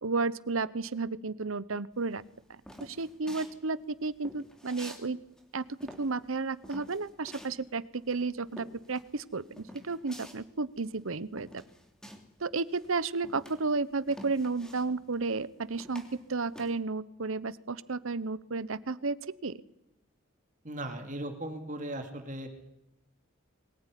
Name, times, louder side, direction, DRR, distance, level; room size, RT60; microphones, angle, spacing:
voice 1, 0.0-2.2 2.5-5.2 5.5-5.7 6.0-11.6 12.4-19.6, right 3 dB, 75° right, 17 dB, 0.9 m, -33 dB
sound 1, 2.0-5.0 5.3-12.4 12.7-16.7, equal, 5° left, 3.1 m, -49 dB
voice 2, 20.6-22.5, right 1 dB, 35° right, 5 dB, 2.8 m, -37 dB
22.5 x 19.5 x 9.9 m, 0.87 s
head